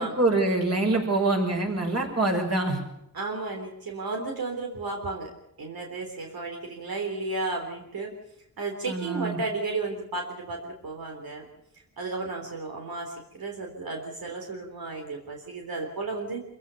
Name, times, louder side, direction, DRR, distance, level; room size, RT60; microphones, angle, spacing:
voice 1, 0.0-2.8 8.9-9.4, right 2 dB, 45° right, 2 dB, 6.0 m, -25 dB
voice 2, 3.1-5.3 5.6-8.1 8.6-11.4 12.0-16.4, right 3 dB, 90° right, 2 dB, 3.6 m, -33 dB
26.5 x 16.0 x 7.0 m, 0.81 s
wide cardioid pair, 105°, 35 cm